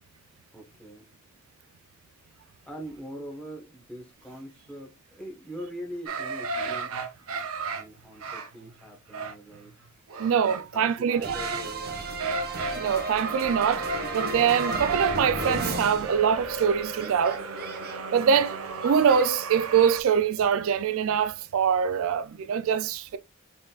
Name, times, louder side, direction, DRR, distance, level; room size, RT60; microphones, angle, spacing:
voice 1, 0.5-1.1 2.4-7.0 7.7-9.7 10.4-12.0, right 1 dB, 5° left, 1.3 m, -42 dB
sound 1, 6.1-11.7 11.9-12.9 13.1-20.0, right 4 dB, 90° right, 0.7 m, -34 dB
voice 2, 10.2-11.4 12.7-13.9 14.1-17.4 18.1-18.6 18.8-23.2, right 7 dB, 70° right, 0.4 m, -24 dB
sound 2, 11.2-16.7 16.9-19.3, right 3 dB, 50° right, 1.1 m, -33 dB
4.2 x 3.7 x 2.4 m
head